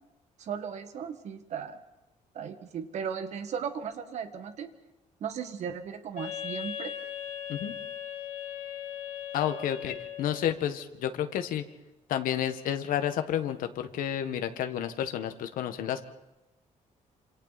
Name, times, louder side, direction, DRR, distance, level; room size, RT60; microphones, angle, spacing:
voice 1, 0.4-1.8 2.4-4.7 5.2-6.9, right 7 dB, 55° right, 8 dB, 1.8 m, -36 dB
Wind instrument woodwind instrument, 6.1-10.6, left 9 dB, 65° left, 2.8 m, -38 dB
voice 2, 9.3-11.6 12.1-16.0, left 10 dB, 85° left, 8 dB, 1.6 m, -30 dB
27.5 x 26.5 x 4.2 m, 0.96 s
cardioid pair, 175°, 14 cm